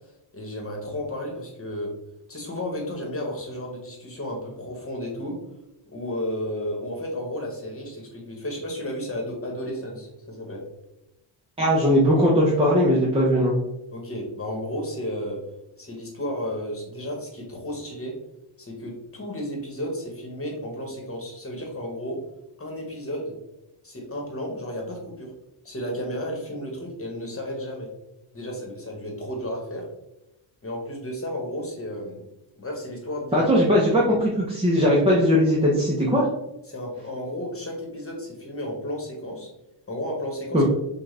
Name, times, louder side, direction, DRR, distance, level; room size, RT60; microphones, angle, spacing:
voice 1, 0.3-1.9 2.3-5.4 5.8-10.6 13.9-15.4 15.8-18.1 18.6-22.2 22.6-23.3 23.8-25.3 25.6-27.9 28.3-29.9 30.6-32.3 32.6-33.5 36.7-39.5 39.9-40.6, equal, 25° left, 0 dB, 1.3 m, -33 dB
voice 2, 11.6-13.5 33.3-36.3 40.5-40.6, equal, 10° right, -4 dB, 0.8 m, -19 dB
6.2 x 2.5 x 3.3 m, 0.89 s
wide cardioid pair, 135°, 49 cm